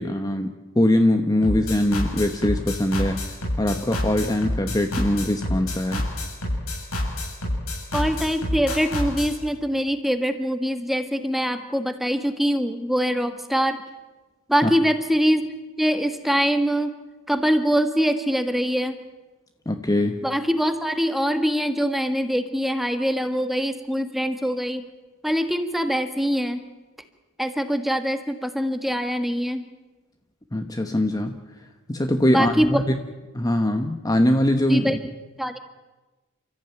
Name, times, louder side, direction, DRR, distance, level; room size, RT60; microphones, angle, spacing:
voice 1, 0.0-3.2 3.6-6.0 14.6-14.7 19.7-20.2 30.5-31.4 31.9-32.9 33.3-35.0, left 1 dB, 15° left, 6 dB, 1.1 m, -22 dB
sound 1, 1.4-9.3, left 1 dB, 85° left, 7.4 m, -27 dB
voice 2, 7.9-13.8 14.5-15.5 15.8-17.0 17.3-19.0 20.2-24.9 25.2-26.6 27.4-29.7 32.3-32.8 34.7-35.1 35.4-35.6, equal, ahead, 7 dB, 1.5 m, -23 dB
29.5 x 14.5 x 9.1 m, 1.2 s
head